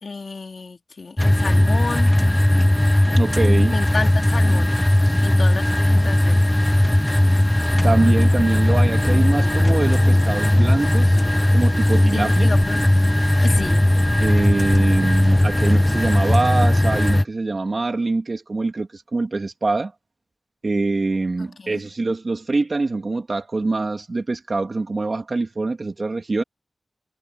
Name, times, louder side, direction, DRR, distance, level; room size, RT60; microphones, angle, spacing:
voice 1, 0.0-2.1 3.7-4.7 5.2-6.5 12.1-13.1 13.4-13.9 21.6-21.8, left 4 dB, 60° left, 2.8 m, -31 dB
sound 1, 1.2-17.2, left 1 dB, 10° left, 0.8 m, -17 dB
voice 2, 3.2-3.8 5.0-5.2 7.8-11.2 11.5-12.5 14.2-19.9 20.6-26.4, right 3 dB, 45° right, 3.2 m, -24 dB
sound 2, 3.8-17.2, left 3 dB, 40° left, 1.2 m, -35 dB
wide cardioid pair, 115°, 0 cm